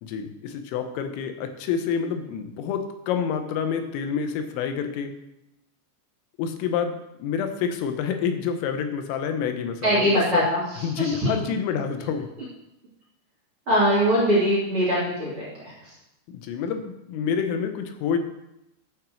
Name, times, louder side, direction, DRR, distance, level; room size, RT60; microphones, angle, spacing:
voice 1, 0.0-5.1 6.4-10.5 10.8-12.3 16.3-18.2, left 7 dB, 90° left, 7 dB, 3.6 m, -28 dB
voice 2, 9.8-11.3 13.7-15.9, equal, 35° right, -6 dB, 2.9 m, -22 dB
11.0 x 5.8 x 6.3 m, 0.88 s
omnidirectional pair, 5.7 m